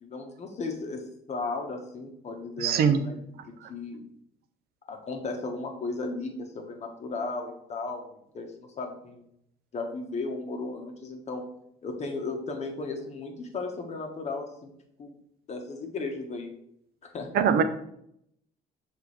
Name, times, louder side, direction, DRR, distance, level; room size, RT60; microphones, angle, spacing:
voice 1, 0.0-3.2 3.4-4.0 4.9-9.2 9.7-11.4 11.8-14.7 15.0-15.1 15.5-16.5 17.0-17.3, left 3 dB, 40° left, 3 dB, 1.4 m, -35 dB
voice 2, 2.6-3.0 17.3-17.6, right 7 dB, 70° right, 9 dB, 0.7 m, -22 dB
6.6 x 4.0 x 4.3 m, 0.73 s
cardioid pair, 110°, 17 cm